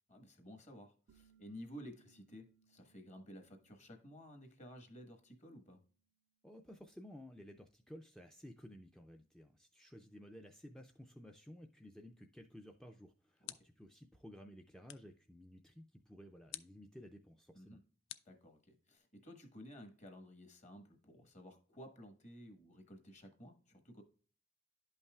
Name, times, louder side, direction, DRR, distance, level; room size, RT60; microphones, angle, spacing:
voice 1, 0.1-5.8 13.4-13.7 17.5-17.8 18.2-24.0, equal, 40° left, 6 dB, 1.3 m, -54 dB
sound 1, 1.1-6.5, right 7 dB, 85° right, 0.4 m, -74 dB
voice 2, 6.4-17.8, equal, 5° left, 3 dB, 0.3 m, -55 dB
sound 2, 12.8-14.0 14.9-15.2 16.5-16.9 18.1-19.0, left 13 dB, 70° left, 0.4 m, -52 dB
11.0 x 5.5 x 2.3 m, 0.41 s
head